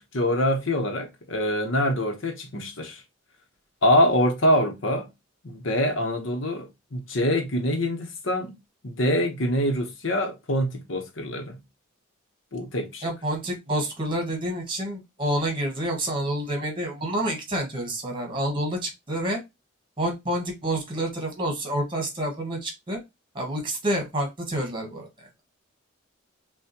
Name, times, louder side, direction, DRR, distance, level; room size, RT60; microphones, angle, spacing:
voice 1, 0.0-3.0 3.8-5.1 5.4-8.5 8.8-11.6 12.5-13.1, equal, 70° left, 1.2 m, -25 dB
voice 2, 13.0-19.4 20.0-23.0 23.3-25.4, right 1 dB, 25° right, 1.6 m, -28 dB
5.8 x 2.6 x 3.0 m
head